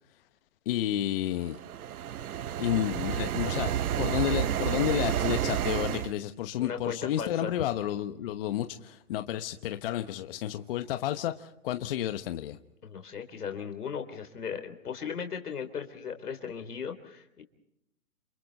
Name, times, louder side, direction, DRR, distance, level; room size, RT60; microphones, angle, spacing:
voice 1, 0.7-1.6 2.6-3.7 4.0-12.6, left 12 dB, 40° left, 1.1 m, -31 dB
sound 1, 1.4-6.1, right 10 dB, 70° right, 0.8 m, -30 dB
voice 2, 6.6-7.5 12.8-17.4, left 7 dB, 80° left, 3.8 m, -37 dB
28.0 x 28.0 x 4.1 m
hypercardioid pair, 145°, 45 cm